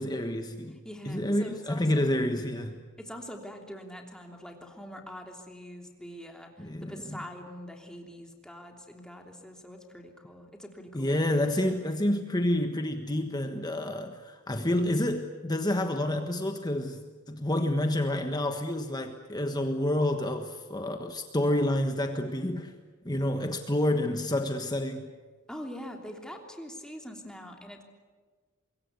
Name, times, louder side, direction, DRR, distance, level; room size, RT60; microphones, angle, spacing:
voice 1, 0.0-0.8 1.1-2.8 6.6-7.2 10.9-17.0 17.3-22.7 23.0-25.1, left 1 dB, 20° left, 6 dB, 1.4 m, -29 dB
voice 2, 0.8-2.1 3.0-11.9 25.5-27.8, equal, 5° left, 2 dB, 3.2 m, -44 dB
25.0 x 22.5 x 8.2 m, 1.4 s
head